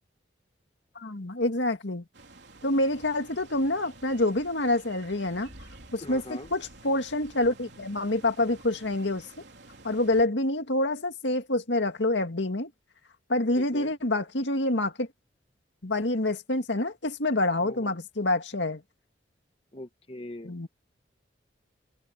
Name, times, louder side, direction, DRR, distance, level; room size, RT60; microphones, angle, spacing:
voice 1, 1.0-2.0 2.6-5.5 5.9-9.3 9.8-12.7 13.3-15.1 15.8-18.8 20.4-20.7, left 2 dB, 75° left, 2.1 m, -27 dB
sound 1, 2.1-10.3, right 2 dB, 65° right, 3.8 m, -50 dB
voice 2, 6.0-6.5 13.6-13.9 17.6-18.0 19.7-20.5, left 1 dB, 30° left, 1.1 m, -41 dB
head